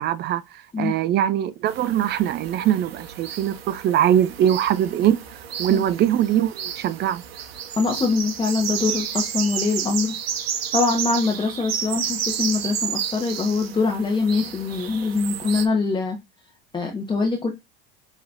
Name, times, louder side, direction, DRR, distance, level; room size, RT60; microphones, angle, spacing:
voice 1, 0.0-5.2 5.6-7.2, right 11 dB, 35° right, 0.5 m, -22 dB
sound 1, 1.7-15.7, right 8 dB, 85° right, 0.7 m, -31 dB
voice 2, 7.8-10.1 10.7-16.2 16.7-17.5, left 4 dB, 15° left, 1.0 m, -23 dB
5.8 x 3.1 x 2.5 m
hypercardioid pair, 90°, 29 cm